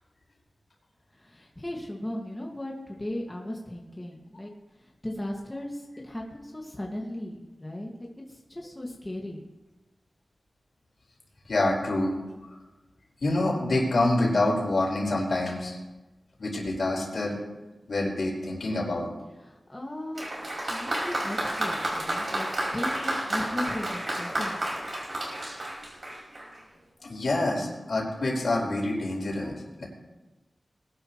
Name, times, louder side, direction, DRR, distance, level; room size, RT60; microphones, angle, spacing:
voice 1, 1.1-4.5 4.8-9.4 19.4-20.2 20.7-22.5 22.7-24.8, left 1 dB, 20° left, -1 dB, 2.1 m, -37 dB
voice 2, 11.5-12.1 12.4-12.5 13.2-15.8 16.4-17.4 17.9-19.1 27.0-29.8, left 2 dB, 75° left, -2 dB, 4.9 m, -27 dB
Applause, 20.1-26.6, right 1 dB, 55° right, 5.2 m, -31 dB
21.0 x 12.0 x 3.2 m, 1.1 s
wide cardioid pair, 55°, 0 cm